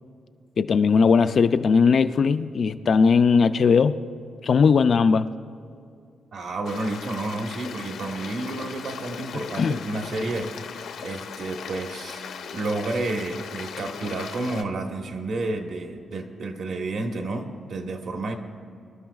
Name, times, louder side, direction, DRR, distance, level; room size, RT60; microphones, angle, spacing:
voice 1, 0.6-4.0 4.4-5.3 9.6-9.8, left 5 dB, 40° left, 0.3 m, -19 dB
voice 2, 6.3-12.3 12.5-18.4, right 2 dB, 55° right, 1.2 m, -30 dB
Stream, 6.6-14.6, left 7 dB, 75° left, 0.8 m, -38 dB
25.0 x 12.5 x 2.4 m
wide cardioid pair, 175°, 0 cm